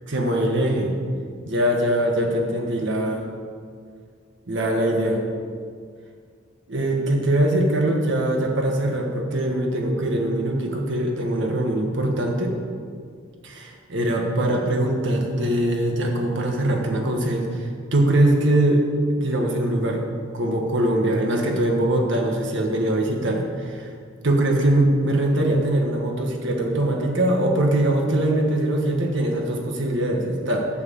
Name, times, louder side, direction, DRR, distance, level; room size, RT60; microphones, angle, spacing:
voice 1, 0.1-0.9 1.4-3.3 4.5-5.2 6.7-12.5 13.4-18.8 19.2-20.0 20.3-23.9 24.2-30.7, right 1 dB, 65° right, 1 dB, 1.5 m, -22 dB
9.4 x 7.5 x 7.1 m, 2.1 s
head